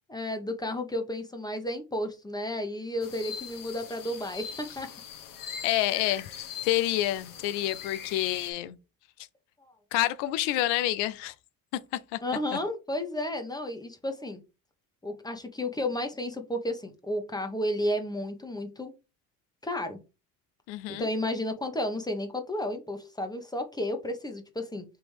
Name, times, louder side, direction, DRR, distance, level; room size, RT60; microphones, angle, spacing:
voice 1, 0.1-4.9 9.6-9.7 12.2-14.4 15.0-18.9 19.6-20.0 20.9-24.8, left 1 dB, 10° left, 1.1 m, -32 dB
sound 1, 3.0-8.5, left 8 dB, 50° left, 1.0 m, -41 dB
voice 2, 5.6-6.3 6.6-8.8 9.9-11.3 12.1-12.2 12.5-12.6 20.7-21.1, left 15 dB, 80° left, 0.6 m, -28 dB
3.7 x 2.9 x 4.7 m
supercardioid pair, 75°, 41 cm